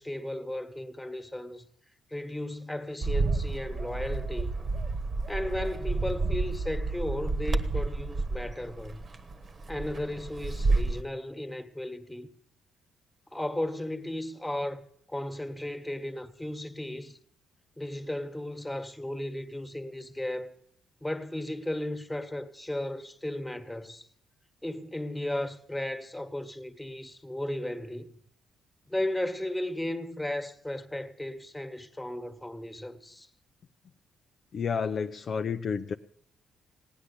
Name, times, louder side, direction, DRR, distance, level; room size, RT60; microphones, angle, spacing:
voice 1, 0.0-1.7 2.1-4.5 5.3-9.0 9.7-12.3 13.3-17.2 17.8-20.5 21.0-24.1 24.6-28.1 28.9-33.3, left 1 dB, 10° left, 1.5 m, -35 dB
Bird, 3.0-11.0, right 3 dB, 35° right, 1.2 m, -30 dB
voice 2, 34.5-35.9, left 6 dB, 50° left, 0.6 m, -30 dB
16.5 x 9.8 x 8.4 m
cardioid pair, 90°, 0 cm